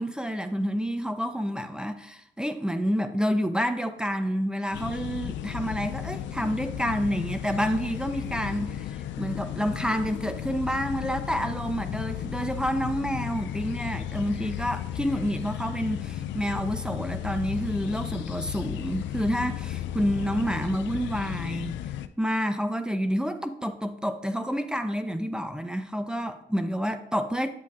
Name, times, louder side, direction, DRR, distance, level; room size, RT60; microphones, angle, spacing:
voice 1, 0.0-21.7 22.2-27.5, equal, 5° right, 0.7 m, -29 dB
sound 1, 4.7-22.1, left 11 dB, 75° left, 0.4 m, -34 dB
8.4 x 7.3 x 2.4 m
supercardioid pair, 50°, 19 cm